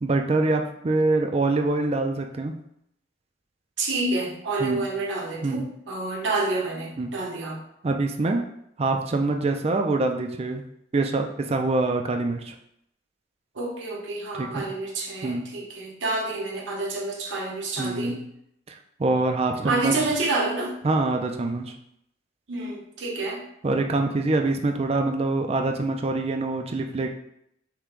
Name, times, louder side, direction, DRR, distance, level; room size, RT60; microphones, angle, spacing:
voice 1, 0.0-2.5 4.6-4.8 5.4-5.7 7.0-7.3 7.8-8.4 8.8-10.6 10.9-12.5 14.4-14.7 15.2-15.5 17.8-18.2 19.0-19.9 20.8-21.7 23.6-27.1, right 2 dB, 30° right, 4 dB, 0.4 m, -25 dB
voice 2, 3.8-7.6 13.5-18.2 19.6-20.8 22.5-23.5, right 2 dB, 70° right, -1 dB, 0.9 m, -28 dB
5.8 x 2.2 x 3.7 m, 0.74 s
head